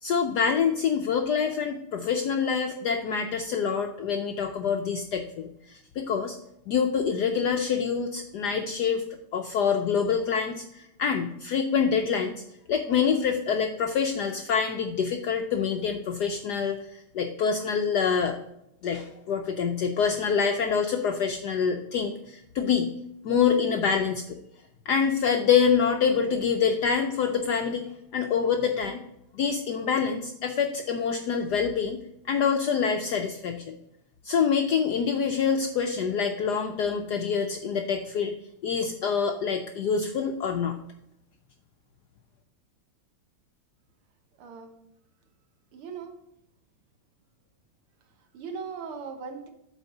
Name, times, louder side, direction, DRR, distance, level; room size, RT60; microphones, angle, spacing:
voice 1, 0.0-6.4 6.7-9.0 9.3-12.3 12.7-18.4 18.8-22.9 23.2-24.4 24.9-29.0 29.3-32.0 32.3-33.7 34.2-38.3 38.6-40.8, left 6 dB, 75° left, 5 dB, 0.9 m, -26 dB
voice 2, 44.4-44.7 45.7-46.2 48.2-49.5, right 5 dB, 80° right, 5 dB, 2.0 m, -39 dB
8.1 x 4.1 x 6.5 m, 0.80 s
omnidirectional pair, 2.4 m